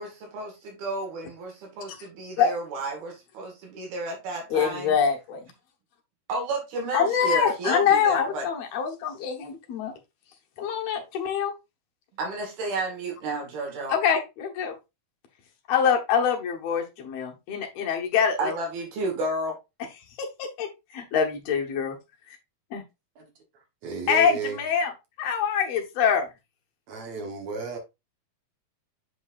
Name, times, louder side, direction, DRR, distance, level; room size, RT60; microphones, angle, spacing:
voice 1, 0.0-4.9 6.3-8.5 12.2-14.0 18.4-19.6, right 2 dB, 80° right, 3.6 m, -32 dB
voice 2, 4.5-5.5 6.9-9.9 10.6-11.5 13.9-14.8 15.7-18.5 20.2-22.0 22.3-22.4 22.7-22.8 24.1-24.9 25.2-26.3, left 7 dB, 65° left, 1.7 m, -25 dB
voice 3, 23.8-24.6 26.9-27.8, right 5 dB, 65° right, 1.9 m, -33 dB
7.9 x 5.4 x 2.5 m
omnidirectional pair, 4.3 m